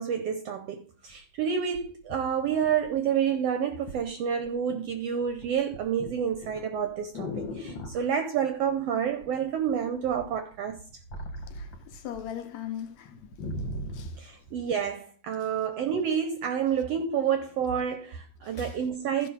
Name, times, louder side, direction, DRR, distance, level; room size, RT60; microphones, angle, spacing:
voice 1, 0.0-10.8 14.2-19.3, right 8 dB, 75° right, 1.5 m, -29 dB
sound 1, 1.1-1.2 1.7-3.2 3.9-4.1 4.4-4.9 5.2-8.1 9.2-9.7 10.0-12.3 12.6-12.7 13.1-14.2 14.8-14.9, left 1 dB, 45° left, 2.0 m, -39 dB
voice 2, 11.5-13.1 13.9-14.1 18.5-18.8, left 10 dB, 75° left, 1.9 m, -39 dB
14.5 x 5.6 x 3.9 m
omnidirectional pair, 3.6 m